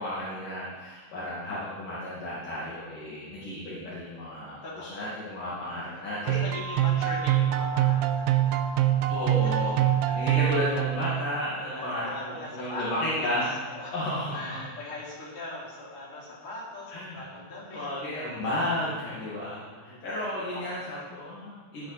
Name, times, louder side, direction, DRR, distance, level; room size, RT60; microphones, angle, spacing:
voice 1, 0.0-6.4 9.1-9.8 10.1-14.6 16.9-17.2 17.7-21.9, left 1 dB, 55° left, -9 dB, 3.8 m, -33 dB
voice 2, 4.6-5.1 5.5-5.7 6.2-9.0 9.4-10.2 11.7-13.2 13.7-17.9 18.2-18.4 19.6-20.1 20.4-21.0, left 2 dB, 35° left, -7 dB, 4.8 m, -41 dB
sound 1, 6.3-11.5, right 12 dB, 85° right, 2.7 m, -25 dB
19.0 x 10.0 x 4.3 m, 1.4 s
omnidirectional pair, 4.6 m